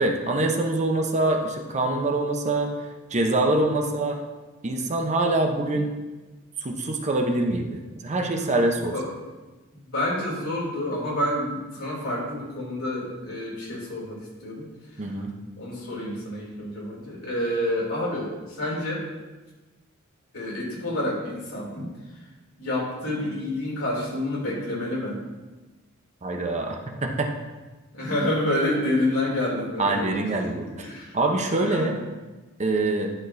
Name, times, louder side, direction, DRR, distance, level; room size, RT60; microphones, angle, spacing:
voice 1, 0.0-2.7 3.1-4.2 4.6-5.9 6.6-8.9 15.0-15.3 26.2-27.3 29.8-30.9 31.1-32.0 32.6-33.1, right 2 dB, 35° right, 3 dB, 0.7 m, -24 dB
voice 2, 9.7-14.6 14.9-15.0 15.6-19.0 20.3-21.9 22.6-25.2 27.9-30.2 30.8-31.2 31.6-31.9, left 1 dB, 80° left, -4 dB, 2.7 m, -28 dB
11.0 x 6.0 x 2.6 m, 1.2 s
head